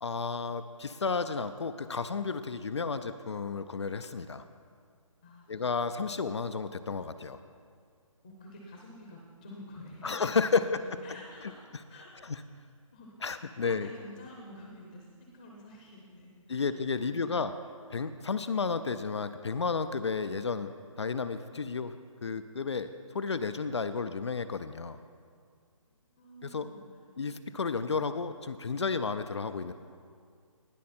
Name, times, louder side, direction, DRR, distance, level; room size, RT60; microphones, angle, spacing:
voice 1, 0.0-4.4 5.5-7.4 10.0-10.8 12.2-12.4 13.2-13.9 16.5-17.5 17.9-20.7 21.0-25.0 26.4-26.7 27.2-29.7, left 5 dB, 55° left, 11 dB, 0.4 m, -32 dB
voice 2, 5.2-5.8 8.2-12.3 12.5-12.7 12.9-13.3 13.6-17.5 26.0-26.9, left 1 dB, 20° left, 0 dB, 0.8 m, -50 dB
18.5 x 6.3 x 4.3 m, 2.2 s
hypercardioid pair, 175°, 18 cm